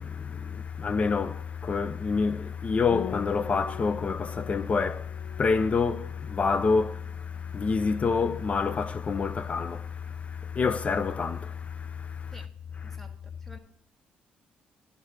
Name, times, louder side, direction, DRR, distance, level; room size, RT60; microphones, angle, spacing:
voice 1, 0.0-12.5 12.7-13.0, left 5 dB, 40° left, 0.5 m, -28 dB
Piano, 2.9-12.2, left 10 dB, 90° left, 0.9 m, -46 dB
voice 2, 12.8-13.1 13.4-13.6, equal, 5° left, 1.4 m, -49 dB
11.0 x 3.7 x 6.6 m
cardioid pair, 75°, 4 cm